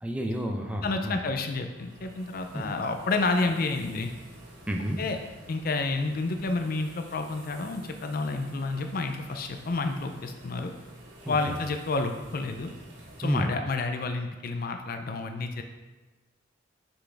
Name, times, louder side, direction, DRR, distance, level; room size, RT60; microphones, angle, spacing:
voice 1, 0.0-1.2 2.5-2.6 4.7-5.0 11.3-11.4 13.2-13.5, right 1 dB, 5° right, 2 dB, 0.5 m, -30 dB
voice 2, 0.8-4.1 5.0-5.2 5.5-10.7 11.3-12.7 13.2-15.6, left 3 dB, 50° left, 6 dB, 0.5 m, -30 dB
sound 1, 1.6-13.4, right 1 dB, 75° right, 1.5 m, -51 dB
6.0 x 5.7 x 3.4 m, 1.2 s
head